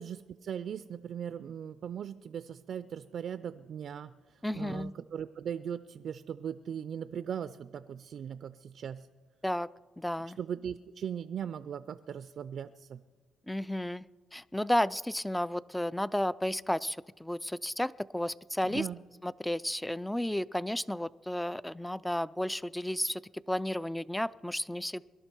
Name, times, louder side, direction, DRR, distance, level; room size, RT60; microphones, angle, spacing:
voice 1, 0.0-9.1 10.4-13.0 18.6-19.0, right 8 dB, 60° right, 13 dB, 0.4 m, -39 dB
voice 2, 4.4-4.9 9.4-9.7 10.0-10.4 13.5-14.0 14.3-18.9 19.2-23.2 23.5-25.0, left 1 dB, 5° left, 19 dB, 0.3 m, -32 dB
22.5 x 11.5 x 4.5 m, 1.5 s
cardioid pair, 90°, 0 cm